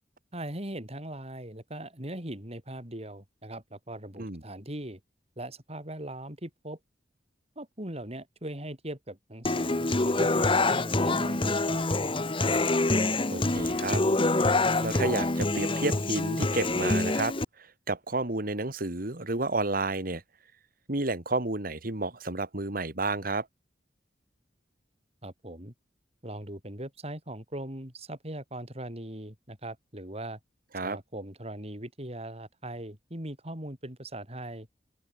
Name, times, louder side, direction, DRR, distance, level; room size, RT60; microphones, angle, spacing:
voice 1, 0.3-5.0 5.4-6.8 7.5-11.9 25.2-25.7 26.2-30.4 30.8-34.7, right 1 dB, 35° right, 6.7 m, -40 dB
Human voice / Acoustic guitar, 9.4-17.4, left 2 dB, 30° left, 1.3 m, -26 dB
voice 2, 13.3-14.0 14.8-20.2 20.9-23.5 30.7-31.0, right 2 dB, 55° right, 2.3 m, -31 dB
open air
head